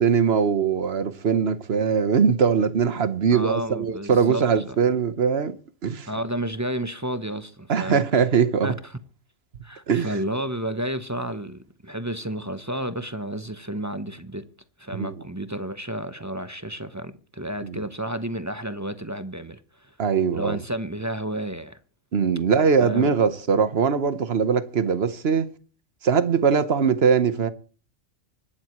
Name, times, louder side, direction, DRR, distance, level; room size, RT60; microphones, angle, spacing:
voice 1, 0.0-5.6 5.8-6.1 7.7-8.7 9.9-10.2 14.9-15.1 17.6-17.8 20.0-20.6 22.1-25.5 26.0-27.5, right 6 dB, 55° right, 1.2 m, -21 dB
voice 2, 3.3-4.8 6.1-8.0 8.6-8.7 9.6-14.5 14.8-20.0 20.3-21.8 22.8-23.1, right 1 dB, 15° right, 0.6 m, -31 dB
25.0 x 12.0 x 3.1 m
omnidirectional pair, 1.3 m